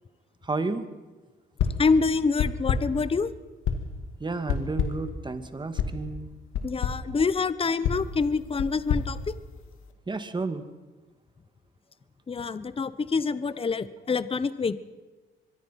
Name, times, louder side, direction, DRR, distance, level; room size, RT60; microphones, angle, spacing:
voice 1, 0.4-0.9 4.2-6.3 7.7-7.8 10.1-10.6, right 3 dB, 25° right, 9 dB, 2.2 m, -31 dB
sound 1, 1.6-2.0 2.4-3.0 3.6-4.0 4.5-5.1 5.8-6.0 6.5-7.1 7.8-9.9, left 7 dB, 85° left, 2.2 m, -29 dB
voice 2, 1.8-3.3 6.6-9.3 12.3-14.8, left 4 dB, 30° left, 15 dB, 1.0 m, -26 dB
24.5 x 23.0 x 5.8 m, 1.2 s
cardioid pair, 90°, 20 cm